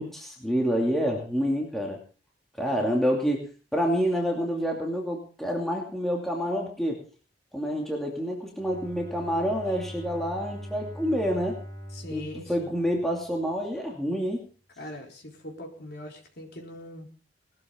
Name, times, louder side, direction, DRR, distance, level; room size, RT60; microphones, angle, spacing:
voice 1, 0.0-2.0 2.6-3.4 3.7-7.0 7.5-11.6 12.1-14.4, equal, ahead, -1 dB, 2.6 m, -28 dB
voice 2, 2.6-2.9 11.9-12.7 14.8-17.1, left 1 dB, 55° left, 1 dB, 4.0 m, -42 dB
Bowed string instrument, 8.6-13.5, equal, 20° left, 5.3 m, -42 dB
19.5 x 13.0 x 3.7 m, 0.37 s
head